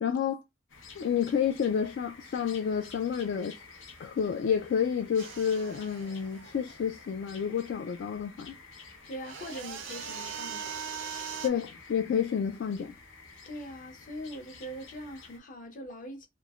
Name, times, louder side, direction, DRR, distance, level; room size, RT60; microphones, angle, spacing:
voice 1, 0.0-0.4 1.0-3.6 4.0-8.5 11.4-12.9, left 7 dB, 65° left, 0.3 m, -30 dB
sound 1, 0.7-15.4, left 4 dB, 90° left, 0.7 m, -51 dB
sound 2, 5.2-7.2 9.2-11.5, right 7 dB, 80° right, 0.5 m, -40 dB
voice 2, 9.1-10.9 13.5-16.3, equal, 45° left, 0.7 m, -42 dB
3.1 x 2.0 x 2.3 m
head